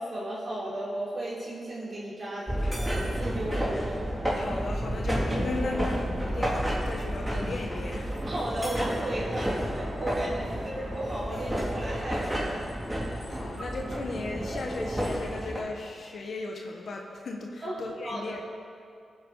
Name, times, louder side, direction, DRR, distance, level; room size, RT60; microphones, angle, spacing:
voice 1, 0.0-4.1 8.3-12.7 17.6-18.5, right 1 dB, 45° right, -7 dB, 3.7 m, -35 dB
sound 1, 2.5-15.6, equal, 10° right, 2.6 m, -31 dB
voice 2, 4.3-8.2 13.0-18.5, left 3 dB, 65° left, 1 dB, 1.3 m, -36 dB
19.5 x 7.9 x 4.0 m, 2.3 s
cardioid pair, 90°, 0 cm